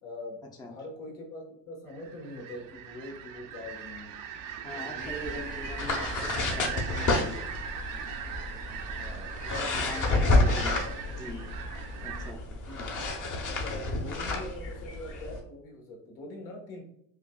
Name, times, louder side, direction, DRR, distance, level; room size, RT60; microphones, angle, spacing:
voice 1, 0.0-4.1 4.7-5.6 5.9-6.4 8.9-10.5 10.8-11.2 12.6-16.8, left 1 dB, 75° left, 0 dB, 1.4 m, -44 dB
sound 1, 1.9-12.3, right 8 dB, 45° right, 0.6 m, -40 dB
voice 2, 4.6-7.5 9.6-10.8 11.2-11.4 12.0-12.4, left 1 dB, 10° left, 2 dB, 0.5 m, -41 dB
sound 2, 5.0-15.4, left 2 dB, 40° left, 0.9 m, -30 dB
5.4 x 2.4 x 2.3 m, 0.72 s
supercardioid pair, 95°, 48 cm